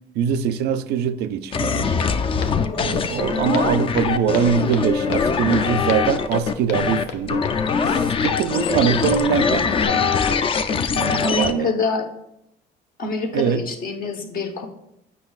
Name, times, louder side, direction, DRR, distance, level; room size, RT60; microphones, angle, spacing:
voice 1, 0.2-2.0 2.8-7.5 7.9-10.2 10.7-11.7 13.3-13.6, right 8 dB, 75° right, 0.4 m, -23 dB
sound 1, 1.5-11.5, left 6 dB, 30° left, 0.4 m, -22 dB
Walk footsteps, 2.0-9.9, left 5 dB, 90° left, 0.6 m, -36 dB
voice 2, 11.2-12.1 13.0-14.7, left 3 dB, 60° left, 0.9 m, -25 dB
8.2 x 5.4 x 2.4 m
cardioid pair, 110°, 17 cm